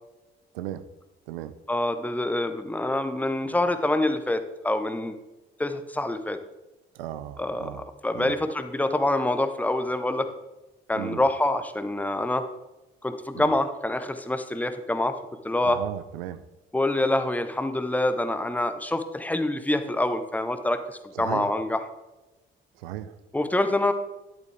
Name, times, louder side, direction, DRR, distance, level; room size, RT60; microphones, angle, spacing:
voice 1, 0.5-0.9 1.3-1.6 6.9-7.8 8.1-8.3 11.0-11.2 13.3-13.5 15.6-16.4 21.1-21.5 22.7-23.2, right 13 dB, 75° right, 13 dB, 0.6 m, -36 dB
voice 2, 1.7-5.2 5.6-6.4 7.4-10.3 10.9-12.4 13.0-15.2 15.4-15.8 16.7-21.8 23.3-23.9, left 1 dB, 5° left, 9 dB, 1.0 m, -26 dB
11.0 x 8.2 x 3.4 m, 1.0 s
figure-of-eight pair, 45°, 30 cm